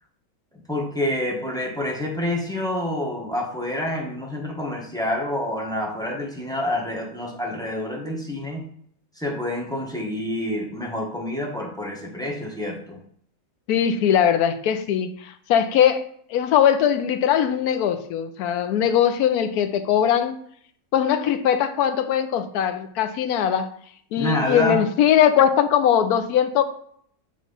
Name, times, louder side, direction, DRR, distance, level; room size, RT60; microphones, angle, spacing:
voice 1, 0.7-8.6 9.2-13.0 24.2-24.8, left 1 dB, 5° left, -1 dB, 1.0 m, -28 dB
voice 2, 13.7-16.0 16.3-20.3 20.9-23.7 24.1-26.6, left 9 dB, 90° left, 9 dB, 1.1 m, -20 dB
7.6 x 3.4 x 3.9 m, 0.63 s
omnidirectional pair, 1.6 m